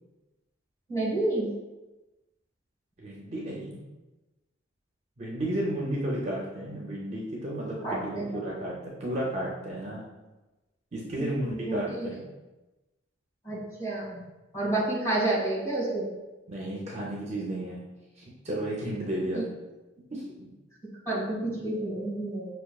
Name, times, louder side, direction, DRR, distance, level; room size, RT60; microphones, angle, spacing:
voice 1, 0.9-1.5 7.8-8.3 11.2-12.0 13.4-14.2 14.5-16.1 19.3-19.4 21.1-22.5, right 2 dB, 15° left, -8 dB, 1.3 m, -29 dB
voice 2, 3.0-3.8 5.2-10.1 10.9-12.2 16.5-17.8 18.2-19.4 20.1-20.5, right 1 dB, 35° right, -4 dB, 0.5 m, -33 dB
5.6 x 2.3 x 2.3 m, 1.1 s
head